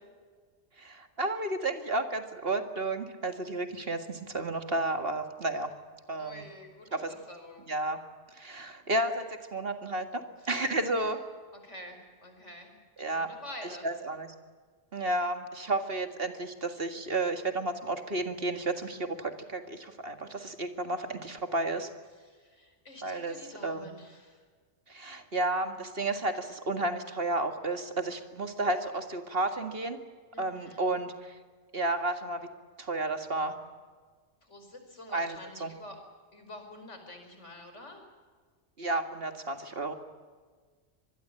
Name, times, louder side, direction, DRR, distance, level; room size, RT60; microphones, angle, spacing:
voice 1, 0.8-5.7 6.1-6.5 6.9-7.1 7.7-8.0 8.3-11.2 13.0-13.3 13.8-14.3 14.9-21.9 23.0-23.4 23.6-23.9 24.9-30.0 30.4-31.4 31.7-32.5 32.8-33.6 35.1-35.7 38.8-39.9, right 2 dB, 55° right, 7 dB, 2.2 m, -32 dB
voice 2, 6.1-7.7 10.4-11.1 11.5-12.7 13.1-13.9 22.1-24.4 30.3-31.0 34.4-36.0 36.3-38.0, left 1 dB, 75° left, 5 dB, 5.4 m, -48 dB
25.5 x 21.0 x 8.9 m, 1.5 s
omnidirectional pair, 1.2 m